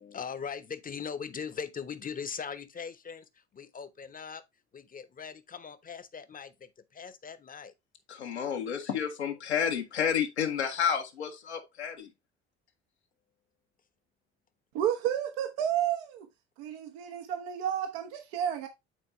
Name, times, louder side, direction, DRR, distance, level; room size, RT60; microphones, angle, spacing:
voice 1, 0.0-4.4 4.7-7.7, left 6 dB, 25° left, 1.0 m, -40 dB
voice 2, 8.1-12.1, left 8 dB, 80° left, 1.4 m, -30 dB
voice 3, 14.7-16.3 16.6-18.7, right 10 dB, 65° right, 1.0 m, -31 dB
9.2 x 4.4 x 3.2 m
figure-of-eight pair, 55°, 33 cm